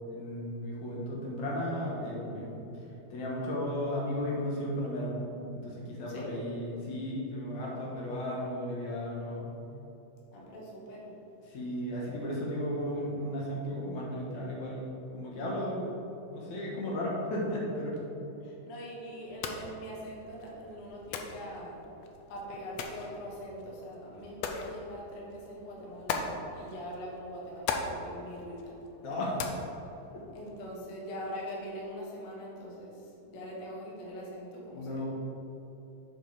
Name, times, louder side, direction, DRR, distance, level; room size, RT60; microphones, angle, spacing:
voice 1, 0.1-2.6 3.1-5.1 5.5-9.6 11.5-14.9 15.1-16.0 16.3-18.0 29.0-29.4 34.7-35.1, left 1 dB, 70° left, -3 dB, 2.5 m, -34 dB
voice 2, 5.8-6.3 10.3-11.1 18.4-21.8 22.3-28.7 30.3-35.0, equal, 50° left, -3 dB, 1.4 m, -42 dB
sound 1, 19.3-30.7, left 4 dB, 85° left, 1.5 m, -41 dB
7.1 x 5.3 x 4.6 m, 3.0 s
omnidirectional pair, 3.6 m